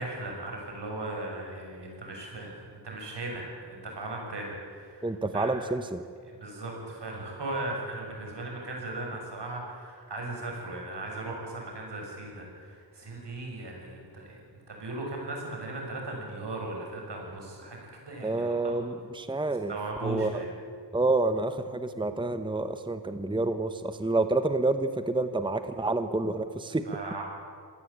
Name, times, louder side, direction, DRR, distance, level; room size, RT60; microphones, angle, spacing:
voice 1, 0.0-5.1 5.3-5.5 6.3-18.7 19.7-20.5 26.7-27.2, right 2 dB, 75° right, 0 dB, 7.2 m, -37 dB
voice 2, 5.0-6.0 18.2-19.7 20.0-20.4 20.9-26.9, right 2 dB, 10° right, 9 dB, 1.0 m, -28 dB
26.5 x 18.0 x 8.7 m, 2.2 s
wide cardioid pair, 110°, 42 cm